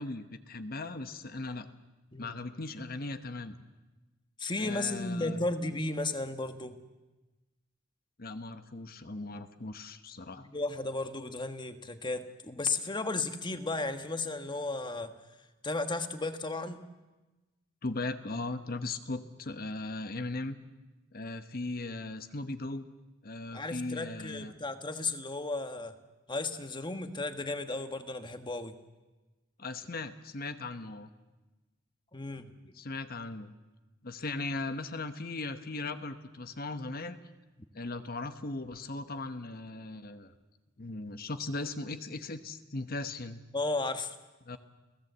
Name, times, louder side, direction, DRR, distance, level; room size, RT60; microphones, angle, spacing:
voice 1, 0.0-1.7 2.2-3.6 4.6-5.5 8.2-10.5 17.8-20.6 21.1-22.9 23.2-24.5 29.6-31.1 32.7-33.5 34.0-37.2 37.7-40.3 40.8-43.4 44.4-44.6, left 2 dB, 45° left, 9 dB, 1.1 m, -38 dB
voice 2, 4.4-6.8 10.4-15.2 15.6-16.8 23.5-25.9 26.3-28.7 32.1-32.8 43.5-44.1, left 2 dB, 25° left, 8 dB, 1.4 m, -34 dB
29.5 x 17.0 x 8.1 m, 1.2 s
head